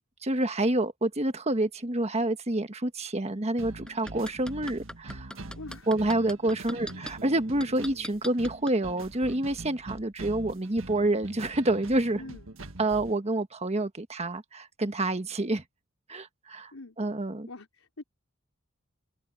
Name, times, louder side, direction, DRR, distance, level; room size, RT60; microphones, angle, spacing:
voice 1, 0.0-5.3 5.9-12.2 12.8-15.6 16.1-16.7 17.0-17.5, right 2 dB, 30° right, 1.4 m, -28 dB
sound 1, 3.6-13.2, right 2 dB, 70° right, 1.8 m, -44 dB
sound 2, 3.9-7.1 7.6-8.8 9.2-9.3, left 1 dB, 5° left, 5.8 m, -39 dB
voice 2, 5.6-5.9 6.4-7.1 12.1-12.5 16.7-17.0 17.5-18.0, left 2 dB, 90° left, 4.0 m, -45 dB
head